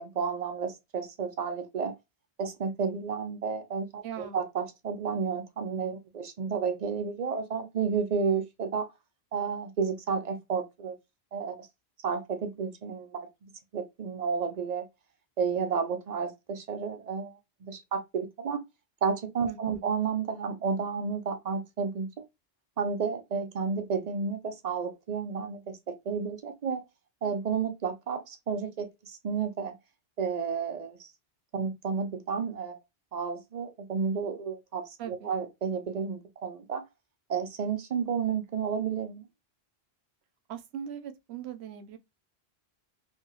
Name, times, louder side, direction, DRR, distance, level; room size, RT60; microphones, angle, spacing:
voice 1, 0.0-1.9 2.4-8.9 9.3-11.0 11.3-11.7 12.0-14.9 15.4-18.6 19.0-22.3 22.8-26.8 27.2-29.8 30.2-31.1 31.5-32.8 33.1-36.8 37.3-39.3, right 6 dB, 50° right, 0.5 m, -31 dB
voice 2, 4.0-4.4 19.5-19.9 35.0-35.3 40.5-42.0, right 9 dB, 80° right, 0.8 m, -40 dB
2.8 x 2.5 x 2.7 m
omnidirectional pair, 1.1 m